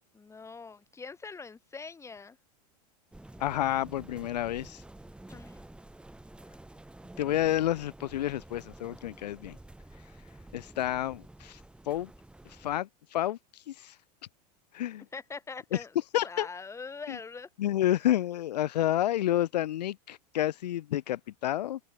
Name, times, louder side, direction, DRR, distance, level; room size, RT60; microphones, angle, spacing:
voice 1, 0.1-2.4 5.3-5.7 15.1-15.9 16.2-17.5, left 4 dB, 15° left, 2.8 m, -43 dB
sound 1, 3.1-12.8, right 1 dB, 5° right, 4.2 m, -50 dB
voice 2, 3.4-4.8 7.2-9.6 10.5-11.6 11.9-12.1 12.6-13.4 13.7-13.9 14.7-15.0 16.1-16.5 17.1-17.2 17.6-21.8, left 13 dB, 90° left, 0.6 m, -29 dB
open air
hypercardioid pair, 120°, 20 cm